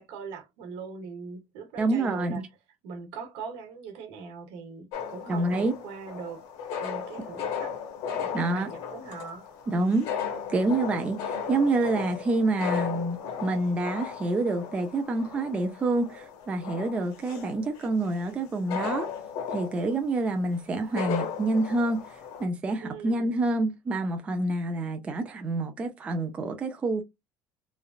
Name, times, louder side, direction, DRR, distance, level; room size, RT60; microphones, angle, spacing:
voice 1, 0.0-2.4 2.8-6.5 6.8-9.5 22.8-23.3, right 5 dB, 70° right, 1.0 m, -41 dB
voice 2, 1.8-2.4 5.3-5.7 7.2-7.3 8.3-8.7 9.7-10.1 10.5-19.1 19.5-22.0 22.4-27.0, right 2 dB, 15° right, 0.4 m, -27 dB
sound 1, 4.9-22.4, left 7 dB, 60° left, 1.0 m, -36 dB
3.1 x 2.4 x 2.3 m
cardioid pair, 175°, 8 cm